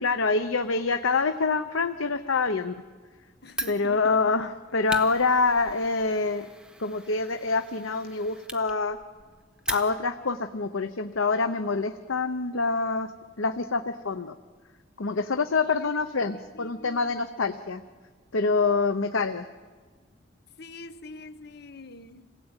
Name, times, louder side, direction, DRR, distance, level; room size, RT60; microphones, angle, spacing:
voice 1, 0.0-2.8 3.7-6.5 6.8-9.0 9.7-13.1 13.4-14.4 15.0-17.8 18.3-19.5, left 4 dB, 85° left, 9 dB, 0.9 m, -26 dB
voice 2, 3.4-4.4 15.6-15.9 16.5-17.2 20.6-22.4, left 2 dB, 55° left, 11 dB, 1.1 m, -44 dB
Fire, 3.5-10.3, right 2 dB, 5° right, 1.3 m, -40 dB
27.5 x 17.0 x 9.0 m, 1.5 s
head